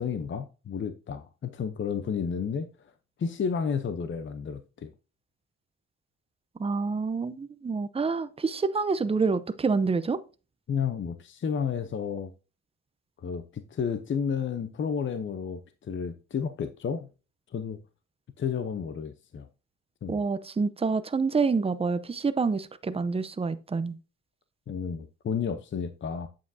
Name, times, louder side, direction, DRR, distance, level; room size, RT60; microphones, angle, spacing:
voice 1, 0.0-2.9 3.2-4.9 10.7-12.3 13.2-17.1 17.5-17.8 18.4-19.5 20.0-20.2 24.7-26.3, left 6 dB, 40° left, 0.8 m, -31 dB
voice 2, 6.6-10.2 20.1-24.0, right 4 dB, 20° right, 0.7 m, -27 dB
8.5 x 7.5 x 2.7 m
cardioid pair, 90°, 30 cm